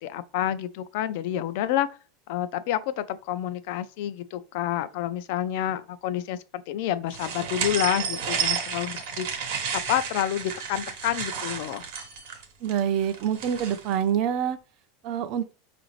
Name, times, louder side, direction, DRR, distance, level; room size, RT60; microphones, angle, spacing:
voice 1, 0.0-1.9 2.3-9.3 9.7-11.8, left 11 dB, 55° left, 0.3 m, -29 dB
sound 1, 7.1-14.0, right 7 dB, 65° right, 1.0 m, -32 dB
voice 2, 12.6-14.6 15.0-15.5, right 9 dB, 45° right, 0.4 m, -26 dB
4.9 x 2.5 x 3.0 m
supercardioid pair, 165°, 0 cm